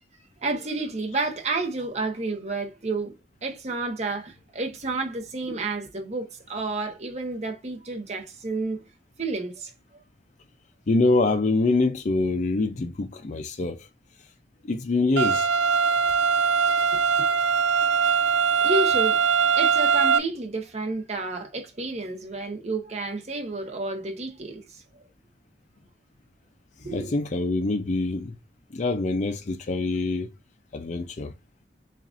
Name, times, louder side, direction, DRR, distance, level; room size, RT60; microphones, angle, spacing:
voice 1, 0.4-3.1 3.4-8.8 9.2-9.7 16.9-17.0 18.6-19.2 19.6-25.0 26.8-27.1, right 3 dB, 40° right, 1.0 m, -30 dB
voice 2, 10.9-13.9 14.6-15.5 26.9-28.4 28.7-30.3 30.7-31.3, left 3 dB, 40° left, 0.5 m, -25 dB
sound 1, 15.2-20.2, right 6 dB, 90° right, 0.4 m, -21 dB
7.0 x 2.5 x 2.5 m
head